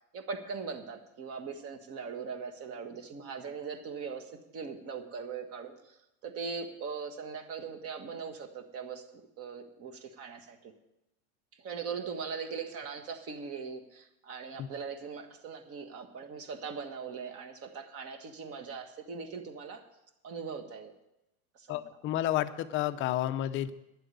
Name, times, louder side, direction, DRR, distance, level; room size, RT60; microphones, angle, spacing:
voice 1, 0.1-9.0 9.4-10.7 11.6-19.8 20.2-20.9 21.5-22.0, right 5 dB, 35° right, 6 dB, 1.6 m, -40 dB
voice 2, 21.7-23.7, left 13 dB, 30° left, 10 dB, 0.6 m, -31 dB
11.0 x 7.7 x 9.3 m, 0.89 s
supercardioid pair, 135°, 42 cm